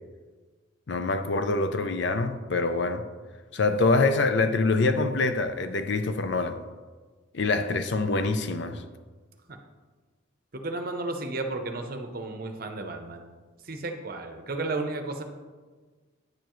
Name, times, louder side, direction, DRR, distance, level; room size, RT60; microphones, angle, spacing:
voice 1, 0.9-3.0 3.5-6.6 7.3-8.8, left 3 dB, 55° left, 0.5 m, -25 dB
voice 2, 10.5-13.3 13.6-15.2, right 2 dB, 45° right, 0.7 m, -33 dB
9.4 x 6.9 x 3.1 m
head